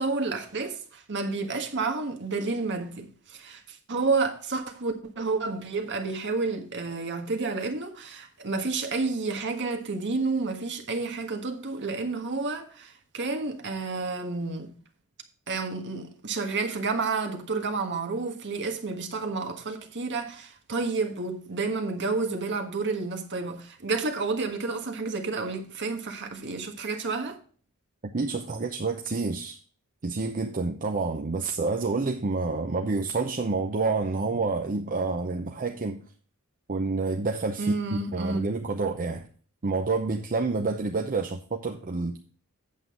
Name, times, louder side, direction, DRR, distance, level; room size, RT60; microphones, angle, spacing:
voice 1, 0.0-14.7 15.5-27.4 37.6-38.5, right 3 dB, 55° right, 1.5 m, -30 dB
voice 2, 28.1-29.6 30.0-36.0 36.7-39.2 39.6-42.2, right 3 dB, 40° right, 0.7 m, -28 dB
8.3 x 7.6 x 3.7 m
head